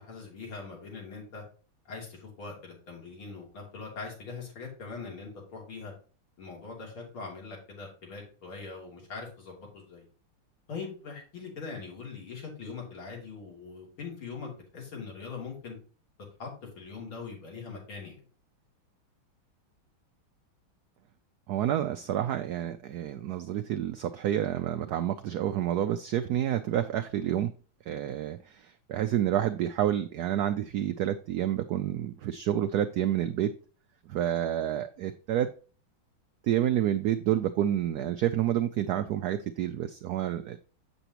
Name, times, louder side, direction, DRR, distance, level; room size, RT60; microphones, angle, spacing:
voice 1, 0.0-1.4 1.9-5.9 6.4-10.1 10.7-15.8 16.4-18.2, left 4 dB, 85° left, 3.7 m, -42 dB
voice 2, 21.5-27.5 27.9-33.5 34.1-35.5 36.4-40.6, right 11 dB, 85° right, 0.8 m, -29 dB
8.0 x 6.9 x 2.9 m
omnidirectional pair, 2.2 m